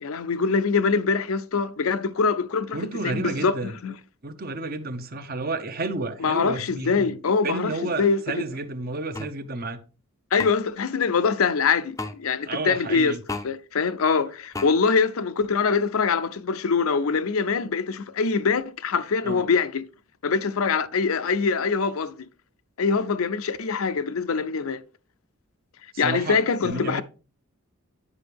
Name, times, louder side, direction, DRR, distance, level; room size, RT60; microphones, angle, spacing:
voice 1, 0.0-4.0 6.2-8.4 10.3-13.1 13.4-19.8 20.2-22.2 22.8-24.8 26.0-27.0, left 5 dB, 75° left, 0.5 m, -24 dB
voice 2, 2.7-3.7 4.2-7.2 7.4-9.8 12.5-13.2 19.2-19.5 25.9-27.0, right 2 dB, 45° right, 0.7 m, -31 dB
sound 1, 9.1-9.3 10.4-10.5 12.0-12.2 13.3-13.5 14.5-14.7, left 3 dB, 15° left, 0.5 m, -32 dB
9.6 x 5.7 x 3.4 m
head